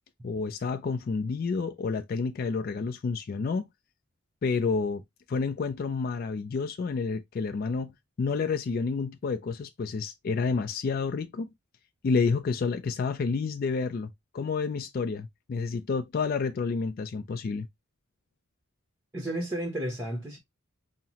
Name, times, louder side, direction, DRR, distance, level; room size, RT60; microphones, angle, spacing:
voice 1, 0.2-3.7 4.4-5.0 5.3-7.9 8.2-11.5 12.0-14.1 14.3-17.7, left 4 dB, 45° left, 0.3 m, -29 dB
voice 2, 19.1-20.4, right 1 dB, 10° right, 0.8 m, -32 dB
5.5 x 2.0 x 2.8 m
head